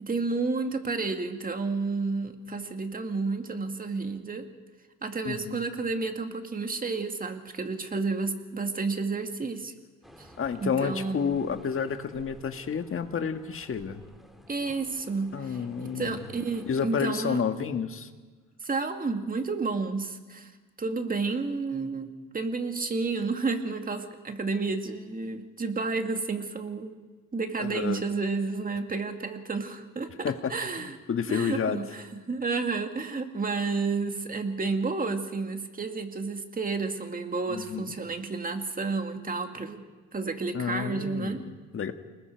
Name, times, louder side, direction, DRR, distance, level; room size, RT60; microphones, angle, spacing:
voice 1, 0.0-4.5 5.0-9.7 10.2-10.3 10.6-11.4 14.5-17.4 18.6-20.5 20.8-27.0 27.3-31.0 31.3-39.8 40.1-41.4, right 4 dB, 30° right, 5 dB, 2.2 m, -31 dB
voice 2, 5.2-5.6 10.4-14.0 15.3-16.3 16.7-18.1 27.6-28.0 30.2-31.8 37.5-37.9 40.5-41.9, left 6 dB, 45° left, 7 dB, 1.7 m, -30 dB
sound 1, 10.0-16.8, equal, ahead, 2.5 m, -53 dB
29.0 x 20.5 x 4.6 m, 1.3 s
cardioid pair, 90°, 30 cm